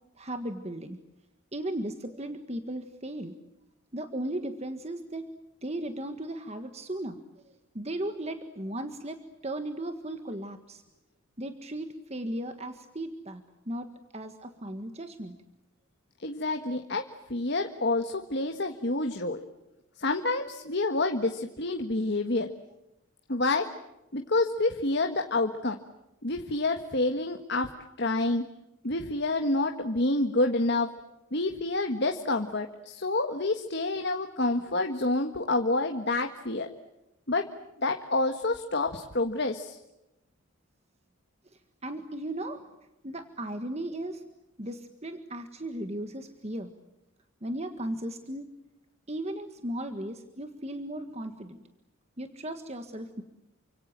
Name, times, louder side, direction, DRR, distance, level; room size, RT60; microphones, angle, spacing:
voice 1, 0.2-1.0 1.5-3.3 3.9-5.3 5.6-7.2 7.4-10.8 11.4-13.9 14.1-15.4 41.8-42.6 43.0-44.2 44.6-46.7 47.4-48.5 49.1-51.6 52.2-53.2, right 1 dB, 30° right, 7 dB, 1.7 m, -36 dB
voice 2, 16.2-19.4 20.0-22.5 23.3-23.7 24.1-25.8 26.2-27.7 28.0-28.5 28.8-30.9 31.3-36.7 37.3-37.5 37.8-39.8, left 2 dB, 50° left, 5 dB, 1.6 m, -28 dB
29.5 x 25.5 x 7.6 m, 0.94 s
head